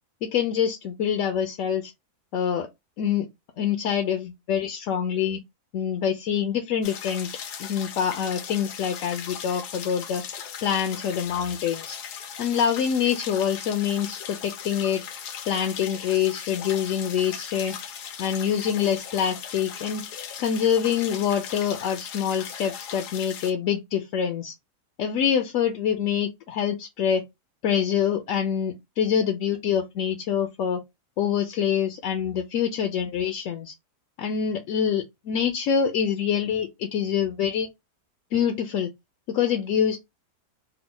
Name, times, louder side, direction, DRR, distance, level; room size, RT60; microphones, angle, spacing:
voice 1, 0.2-1.9 2.3-2.7 3.0-3.3 3.6-5.4 5.7-7.3 7.6-10.2 10.6-12.0 12.4-15.0 15.5-17.7 18.2-20.0 20.4-24.5 25.0-27.2 27.6-30.8 31.2-33.7 34.2-37.7 38.3-38.9 39.3-40.0, left 8 dB, 70° left, 0.8 m, -25 dB
sound 1, 6.8-23.5, left 8 dB, 85° left, 1.2 m, -38 dB
3.4 x 2.1 x 3.7 m
omnidirectional pair, 1.7 m